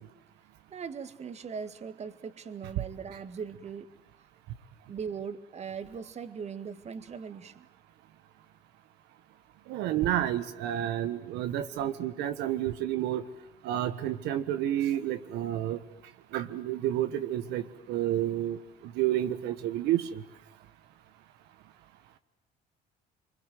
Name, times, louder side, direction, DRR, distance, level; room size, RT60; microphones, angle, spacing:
voice 1, 0.7-3.9 4.9-7.7, right 6 dB, 40° right, 11 dB, 1.9 m, -39 dB
voice 2, 9.7-13.2 13.6-15.8 16.3-18.6 18.8-20.2, right 12 dB, 90° right, 10 dB, 1.4 m, -30 dB
26.5 x 24.0 x 9.4 m, 0.85 s
cardioid pair, 110°, 17 cm